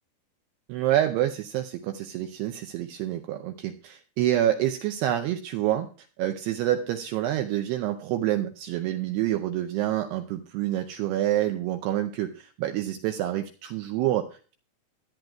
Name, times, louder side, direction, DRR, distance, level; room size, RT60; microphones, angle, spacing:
voice 1, 0.7-5.9 6.2-14.5, right 12 dB, 85° right, 6 dB, 2.3 m, -27 dB
22.0 x 9.3 x 2.3 m, 0.38 s
omnidirectional pair, 5.5 m